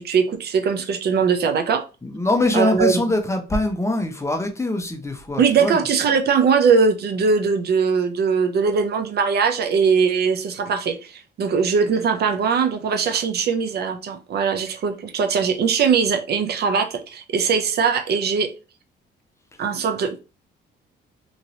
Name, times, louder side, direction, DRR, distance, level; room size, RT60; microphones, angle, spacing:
voice 1, 0.0-1.9 2.5-3.0 5.4-18.5 19.6-20.2, right 6 dB, 55° right, 0.5 m, -20 dB
voice 2, 2.0-5.8, left 2 dB, 15° left, 0.6 m, -23 dB
3.0 x 2.8 x 2.6 m
cardioid pair, 90°, 20 cm